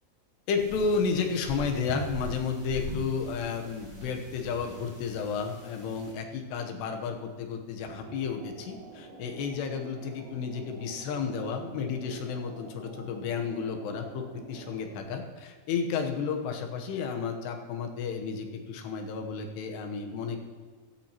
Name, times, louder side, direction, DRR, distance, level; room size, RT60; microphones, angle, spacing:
voice 1, 0.5-20.5, left 5 dB, 85° left, 4 dB, 3.2 m, -32 dB
sound 1, 0.5-6.1, right 1 dB, 15° right, 2.5 m, -42 dB
sound 2, 7.9-15.0, right 4 dB, 65° right, 4.9 m, -47 dB
17.0 x 13.5 x 2.9 m, 1.5 s
omnidirectional pair, 4.7 m